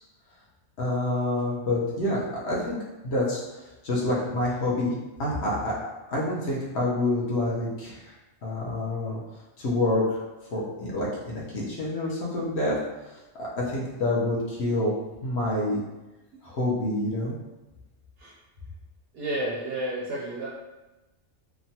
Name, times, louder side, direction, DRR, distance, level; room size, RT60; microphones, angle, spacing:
voice 1, 0.8-2.8 3.0-3.4 3.8-4.9 5.2-5.8 6.1-8.0 8.4-9.2 9.6-10.2 10.5-12.7 13.4-14.9 15.2-15.8 16.4-17.3, left 1 dB, 60° left, -5 dB, 0.9 m, -27 dB
voice 2, 19.1-20.5, right 1 dB, 65° right, -4 dB, 0.6 m, -31 dB
2.9 x 2.2 x 2.7 m, 1.1 s
omnidirectional pair, 1.3 m